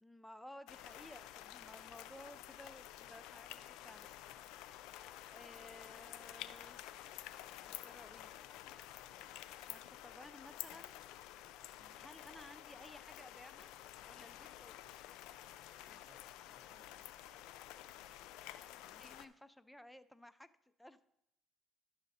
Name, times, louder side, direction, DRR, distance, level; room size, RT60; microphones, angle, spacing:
voice 1, 0.0-4.2 5.1-6.8 7.6-8.3 9.6-11.0 12.0-13.7 14.1-14.9 18.8-20.5 20.8-21.1, left 1 dB, 5° left, 14 dB, 0.4 m, -56 dB
sound 1, 0.7-19.3, left 13 dB, 85° left, 0.4 m, -51 dB
voice 2, 15.9-17.5, right 2 dB, 30° right, 6 dB, 1.1 m, -69 dB
11.5 x 6.3 x 4.1 m, 0.80 s
supercardioid pair, 80°, 0 cm